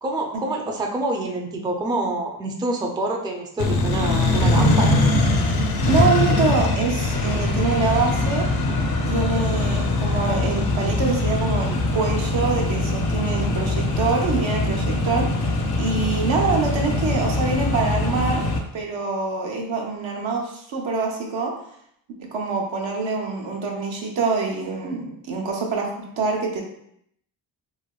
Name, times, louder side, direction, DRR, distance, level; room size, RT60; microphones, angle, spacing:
voice 1, 0.0-5.1, right 2 dB, 10° right, 1 dB, 0.3 m, -26 dB
Accelerating revving vroom, 3.6-18.6, left 2 dB, 55° left, 0.5 m, -22 dB
voice 2, 5.9-8.5 9.1-18.4 18.7-21.5 22.2-26.6, right 4 dB, 75° right, 0 dB, 0.7 m, -25 dB
3.2 x 2.1 x 2.3 m, 0.72 s
cardioid pair, 65°, 46 cm